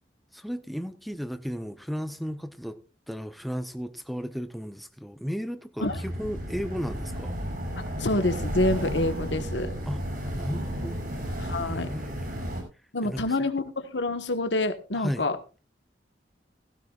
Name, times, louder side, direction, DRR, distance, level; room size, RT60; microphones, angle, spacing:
voice 1, 0.3-2.8 3.1-7.4 9.9-10.0 10.3-11.0 11.7-12.3 13.0-13.3 14.9-15.3, equal, ahead, 0.7 m, -34 dB
sound 1, 5.8-12.6, equal, 55° right, 6.6 m, -33 dB
voice 2, 7.8-9.7 11.4-11.9 12.9-15.4, left 2 dB, 80° left, 1.3 m, -27 dB
16.0 x 15.5 x 2.4 m
head